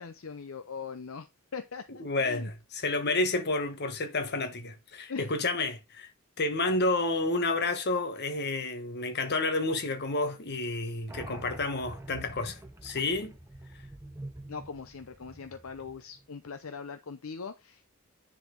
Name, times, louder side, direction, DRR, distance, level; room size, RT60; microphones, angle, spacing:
voice 1, 0.0-2.5 5.1-5.3 14.5-17.9, left 5 dB, 65° left, 0.6 m, -41 dB
voice 2, 2.0-6.1 6.4-13.4, left 2 dB, 50° left, 1.2 m, -30 dB
sound 1, 11.1-16.3, right 1 dB, 10° right, 0.7 m, -45 dB
9.9 x 4.2 x 3.8 m
head